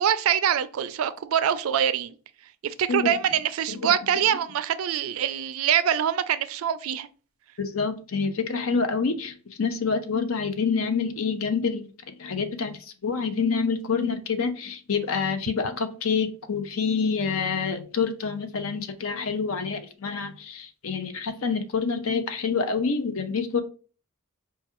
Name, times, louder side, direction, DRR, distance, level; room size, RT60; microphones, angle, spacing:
voice 1, 0.0-2.1 2.6-7.1, right 9 dB, 75° right, 0.4 m, -24 dB
voice 2, 7.6-23.6, left 5 dB, 70° left, 0.6 m, -27 dB
4.5 x 2.3 x 2.9 m
head